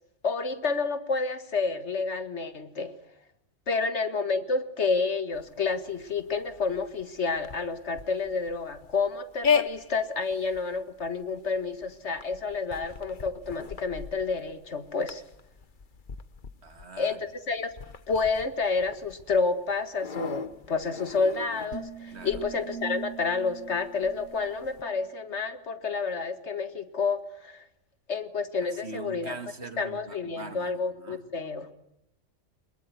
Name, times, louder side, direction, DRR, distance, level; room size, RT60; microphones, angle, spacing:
voice 1, 0.2-2.9 3.7-15.2 17.0-17.7 18.1-27.7 28.1-29.4 29.8-31.7, left 4 dB, 65° left, 10 dB, 2.0 m, -29 dB
sound 1, 5.3-24.8, left 6 dB, 45° left, 1.2 m, -37 dB
voice 2, 16.6-17.2 22.1-22.4 28.6-31.3, right 4 dB, 60° right, 8 dB, 2.4 m, -43 dB
sound 2, 21.7-25.1, right 6 dB, 85° right, 1.8 m, -42 dB
23.5 x 21.0 x 9.4 m, 0.84 s
omnidirectional pair, 1.3 m